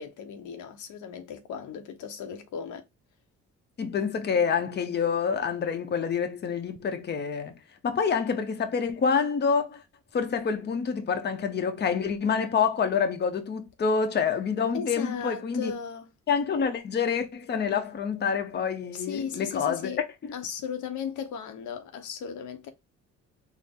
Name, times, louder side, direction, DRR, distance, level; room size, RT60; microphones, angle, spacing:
voice 1, 0.0-2.8 14.7-16.1 18.9-20.0 20.3-22.7, left 7 dB, 75° left, 0.7 m, -36 dB
voice 2, 3.8-7.6 7.8-9.8 10.1-15.7 16.3-20.0 20.2-20.3, left 6 dB, 35° left, 0.7 m, -27 dB
4.1 x 2.0 x 3.4 m
cardioid pair, 90°, 30 cm